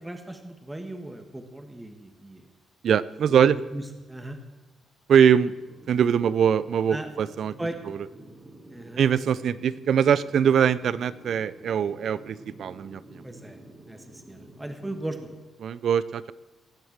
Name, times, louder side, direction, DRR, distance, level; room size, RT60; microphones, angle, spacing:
voice 1, 0.0-2.5 3.3-4.4 6.9-7.1 7.6-7.8 8.7-9.0 13.2-13.6 13.9-15.2, right 1 dB, 10° right, 6 dB, 1.4 m, -37 dB
voice 2, 2.8-3.5 5.1-5.5 5.9-7.5 9.0-13.2 15.6-16.3, right 8 dB, 60° right, 18 dB, 0.5 m, -22 dB
sound 1, 5.4-15.3, right 1 dB, 30° right, 2.9 m, -49 dB
18.5 x 7.9 x 7.4 m, 1.2 s
cardioid pair, 90°, 0 cm